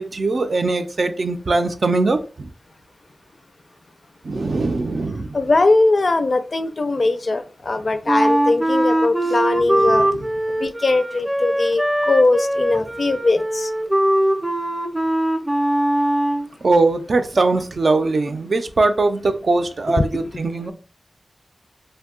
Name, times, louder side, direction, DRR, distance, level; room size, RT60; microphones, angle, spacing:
voice 1, 0.0-2.5 4.2-5.4 9.9-10.3 16.6-20.7, right 3 dB, 65° right, 8 dB, 0.4 m, -21 dB
voice 2, 5.3-10.1 10.6-13.7 19.9-20.0, left 2 dB, 55° left, 10 dB, 0.4 m, -20 dB
Wind instrument woodwind instrument, 8.1-16.5, right 1 dB, 10° right, 0.5 m, -21 dB
2.6 x 2.2 x 3.6 m, 0.36 s
wide cardioid pair, 70°, 0 cm